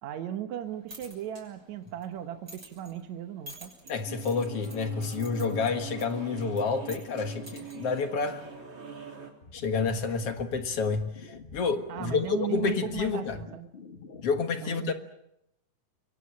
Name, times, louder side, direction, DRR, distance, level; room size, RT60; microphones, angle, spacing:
voice 1, 0.0-3.7 11.9-13.7 14.6-14.9, right 11 dB, 70° right, 2.4 m, -37 dB
sound 1, 0.6-8.6, equal, 25° right, 6.9 m, -51 dB
sound 2, 3.8-9.3, right 8 dB, 50° right, 4.3 m, -43 dB
voice 2, 3.9-8.4 9.5-13.4 14.2-14.9, left 5 dB, 55° left, 2.3 m, -29 dB
sound 3, 9.4-14.4, left 4 dB, 35° left, 1.1 m, -47 dB
26.5 x 23.5 x 7.5 m
omnidirectional pair, 3.4 m